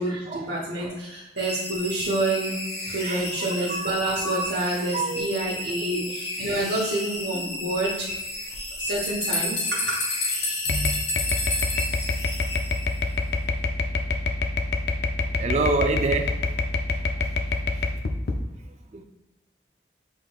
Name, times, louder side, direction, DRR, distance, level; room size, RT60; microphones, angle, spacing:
voice 1, 0.0-2.6 2.9-8.1 8.8-10.0, right 1 dB, 65° right, -6 dB, 1.0 m, -28 dB
sound 1, 1.4-13.2, left 1 dB, 35° left, 1.0 m, -34 dB
voice 2, 3.0-3.9 4.9-5.3 5.9-6.0 15.4-16.4 17.8-17.9 18.9-19.0, right 3 dB, 35° right, 6 dB, 0.4 m, -27 dB
sound 2, 8.5-12.0, left 2 dB, 80° left, 1.0 m, -28 dB
sound 3, 10.7-18.4, left 3 dB, 60° left, 0.5 m, -26 dB
6.1 x 3.7 x 2.3 m, 0.97 s
head